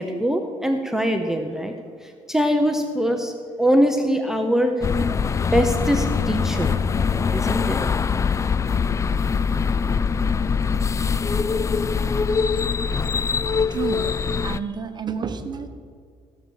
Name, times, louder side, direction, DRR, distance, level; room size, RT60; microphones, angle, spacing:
voice 1, 0.0-3.3 3.6-4.9 5.5-6.7 7.3-7.8, equal, 5° right, 5 dB, 0.8 m, -22 dB
sound 1, 4.8-14.6, left 5 dB, 25° left, 0.3 m, -23 dB
voice 2, 13.7-14.1 14.4-15.7, right 6 dB, 35° right, 8 dB, 1.1 m, -30 dB
15.5 x 7.0 x 6.4 m, 2.1 s
cardioid pair, 100°, 13 cm